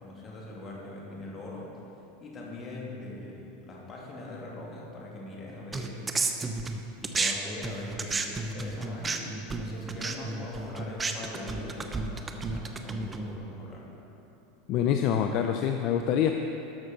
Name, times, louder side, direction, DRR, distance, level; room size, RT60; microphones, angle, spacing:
voice 1, 0.0-1.7 2.2-6.2 7.0-13.9, left 1 dB, 30° left, -3 dB, 2.5 m, -41 dB
sound 1, 5.7-7.3 7.6-13.4, right 3 dB, 20° right, 0.8 m, -32 dB
voice 2, 14.7-16.3, left 9 dB, 55° left, 5 dB, 0.5 m, -25 dB
12.5 x 6.3 x 5.3 m, 3.0 s
hypercardioid pair, 100°, 0 cm